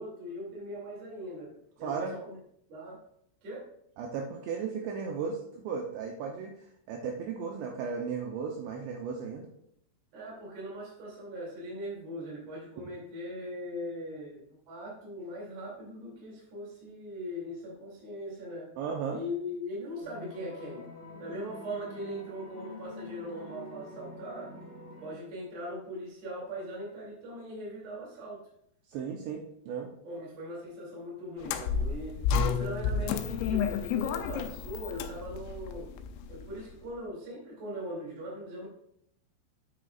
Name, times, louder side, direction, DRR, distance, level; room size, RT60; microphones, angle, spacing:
voice 1, 0.0-1.5 1.8-2.4 2.7-3.0 3.4-3.7 10.1-18.7 19.1-20.8 21.2-24.5 25.0-28.4 30.0-35.9 36.3-38.7, equal, 40° right, -4 dB, 3.1 m, -40 dB
voice 2, 1.8-2.1 4.0-6.5 6.9-9.4 18.8-19.2 28.9-29.9, right 6 dB, 80° right, 1 dB, 2.6 m, -35 dB
sound 1, 20.0-25.1, left 1 dB, 15° left, 2.4 m, -46 dB
sound 2, 31.4-36.7, left 6 dB, 85° left, 3.3 m, -31 dB
9.1 x 8.3 x 2.4 m, 0.72 s
omnidirectional pair, 5.8 m